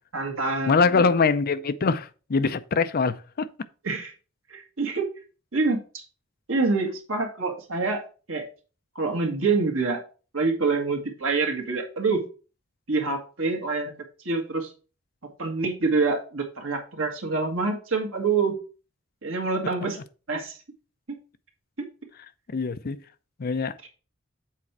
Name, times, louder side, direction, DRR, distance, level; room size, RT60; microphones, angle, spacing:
voice 1, 0.1-1.1 3.8-4.1 4.5-5.1 5.5-6.0 6.5-8.0 8.3-8.5 9.0-10.0 10.3-12.2 12.9-13.9 14.2-14.7 15.4-18.5 19.2-20.0 20.3-20.6 21.1-21.2 21.8-21.9, right 4 dB, 90° right, 1.7 m, -26 dB
voice 2, 0.7-3.5 22.5-23.0 23.4-23.9, left 4 dB, 50° left, 0.5 m, -23 dB
7.4 x 4.2 x 4.7 m
head